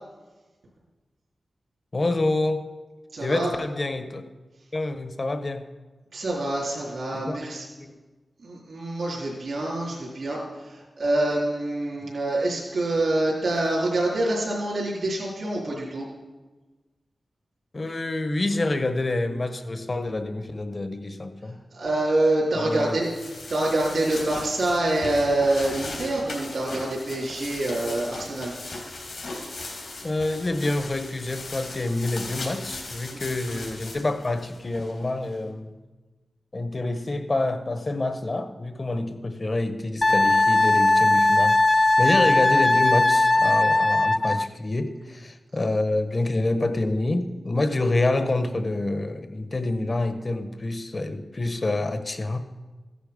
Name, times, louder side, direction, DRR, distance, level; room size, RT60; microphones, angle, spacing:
voice 1, 1.9-2.6 3.2-4.3 4.7-5.7 7.1-7.4 17.7-21.6 22.5-23.0 30.0-35.8 36.5-52.4, left 2 dB, 45° left, 9 dB, 1.3 m, -27 dB
voice 2, 3.1-3.5 6.1-7.7 8.4-16.1 21.4-28.6, right 2 dB, 70° right, -5 dB, 3.8 m, -26 dB
sound 1, 22.8-35.3, left 2 dB, 85° left, 3.8 m, -38 dB
Wind instrument woodwind instrument, 40.0-44.5, left 2 dB, 30° left, 0.4 m, -19 dB
14.5 x 10.0 x 5.5 m, 1.2 s
cardioid pair, 45°, 0 cm